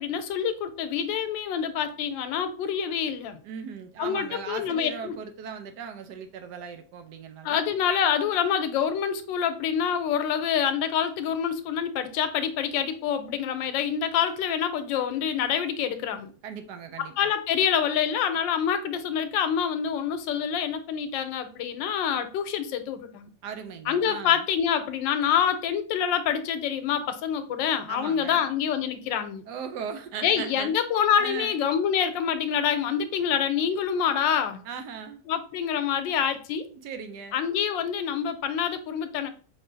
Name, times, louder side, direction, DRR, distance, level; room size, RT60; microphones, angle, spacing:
voice 1, 0.0-3.4 4.0-5.1 7.4-16.3 17.0-23.3 23.9-29.5 30.2-34.6 35.3-36.6 37.3-39.3, left 8 dB, 90° left, 1.3 m, -26 dB
voice 2, 3.4-7.6 16.4-17.3 23.4-24.4 27.9-28.5 29.5-30.7 31.2-31.6 34.6-35.2 36.7-37.4, right 6 dB, 70° right, 1.1 m, -38 dB
5.3 x 3.0 x 2.6 m
omnidirectional pair, 2.0 m